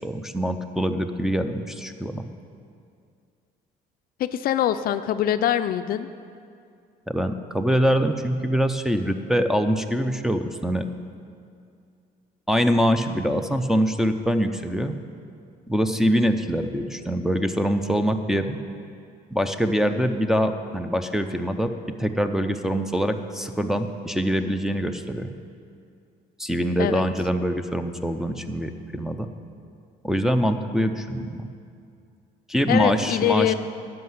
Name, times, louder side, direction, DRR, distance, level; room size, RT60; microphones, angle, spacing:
voice 1, 0.0-2.3 7.1-10.9 12.5-15.0 15.7-18.6 19.3-21.7 22.0-25.3 26.4-29.3 30.0-31.5 32.5-33.5, equal, 5° right, 4 dB, 0.5 m, -24 dB
voice 2, 4.2-6.1 26.8-27.1 32.7-33.5, left 11 dB, 60° left, 11 dB, 0.4 m, -23 dB
11.0 x 5.9 x 7.8 m, 2.4 s
cardioid pair, 110°, 17 cm